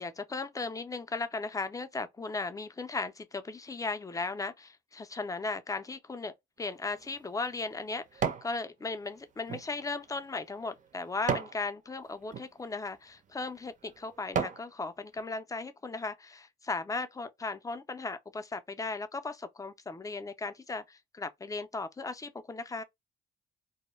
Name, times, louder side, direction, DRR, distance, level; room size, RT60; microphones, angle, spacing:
voice 1, 0.0-22.8, left 3 dB, 15° left, 0.4 m, -37 dB
sound 1, 6.7-8.5 9.0-11.6 12.2-12.5 13.2-13.3 13.8-14.7 15.2-15.3, right 6 dB, 40° right, 0.5 m, -36 dB
2.2 x 2.1 x 3.0 m
cardioid pair, 90°, 20 cm